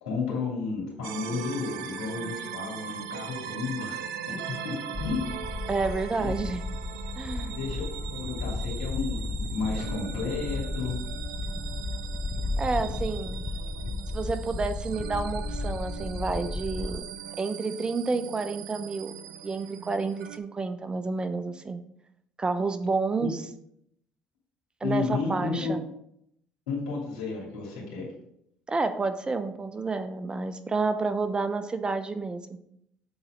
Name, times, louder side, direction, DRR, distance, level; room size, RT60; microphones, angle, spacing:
voice 1, 0.0-4.0 4.3-4.4 4.6-5.2 6.2-6.3 7.5-11.0 23.2-23.3 24.8-25.7 26.7-28.1, left 4 dB, 85° left, -4 dB, 2.9 m, -32 dB
sound 1, 1.0-20.4, right 10 dB, 80° right, 0.5 m, -40 dB
sound 2, 4.9-17.0, left 3 dB, 20° left, 0.5 m, -34 dB
voice 2, 5.7-6.6 7.2-7.5 12.6-13.5 14.1-17.0 17.4-19.1 19.4-21.8 22.4-23.4 24.8-25.8 28.7-32.6, right 3 dB, 25° right, 10 dB, 0.7 m, -30 dB
8.1 x 4.2 x 5.0 m, 0.74 s
hypercardioid pair, 65°, 4 cm